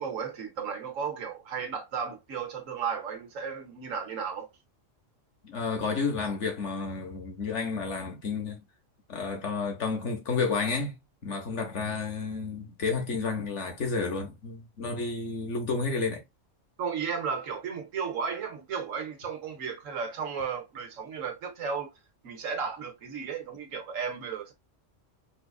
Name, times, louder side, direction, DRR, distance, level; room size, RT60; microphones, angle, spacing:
voice 1, 0.0-4.5 16.8-21.9 22.2-24.5, right 6 dB, 85° right, 1.4 m, -34 dB
voice 2, 5.4-8.6 9.1-11.0 11.2-16.2, left 4 dB, 65° left, 1.4 m, -31 dB
4.8 x 2.4 x 2.3 m
omnidirectional pair, 1.3 m